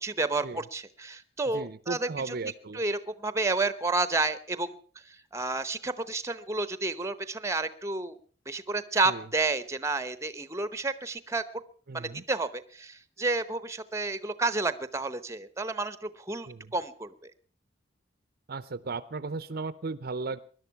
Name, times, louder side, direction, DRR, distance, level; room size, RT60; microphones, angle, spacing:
voice 1, 0.0-2.3 2.7-4.8 5.3-8.2 8.5-11.4 11.9-17.1, right 3 dB, 15° right, 14 dB, 0.8 m, -30 dB
voice 2, 1.5-2.8 9.0-9.3 11.9-12.2 16.5-16.7 18.5-20.4, right 3 dB, 55° right, 16 dB, 0.7 m, -36 dB
20.0 x 11.5 x 5.9 m, 0.43 s
head